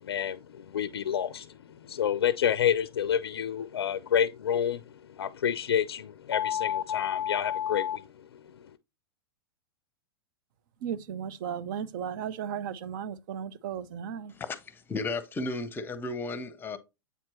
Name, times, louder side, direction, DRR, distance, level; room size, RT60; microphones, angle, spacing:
voice 1, 0.0-8.7, left 9 dB, 75° left, 0.4 m, -29 dB
voice 2, 10.8-14.3, right 8 dB, 55° right, 0.7 m, -35 dB
voice 3, 14.3-16.8, left 3 dB, 15° left, 0.8 m, -34 dB
8.1 x 4.4 x 3.0 m
hypercardioid pair, 105°, 13 cm